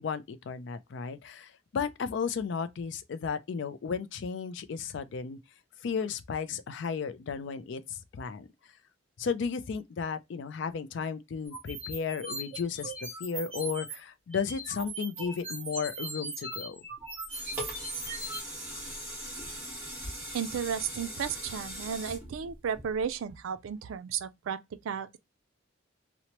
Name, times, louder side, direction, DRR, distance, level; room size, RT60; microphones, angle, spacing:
voice 1, 0.0-5.4 5.8-8.5 9.2-12.9 13.2-16.8, left 6 dB, 65° left, 0.3 m, -34 dB
sound 1, 11.4-14.0 14.3-18.4, right 2 dB, 30° right, 1.0 m, -39 dB
sound 2, 17.0-23.3 23.8-23.9, equal, 10° right, 1.3 m, -40 dB
voice 2, 20.3-25.2, right 7 dB, 85° right, 0.4 m, -34 dB
2.9 x 2.1 x 2.9 m
head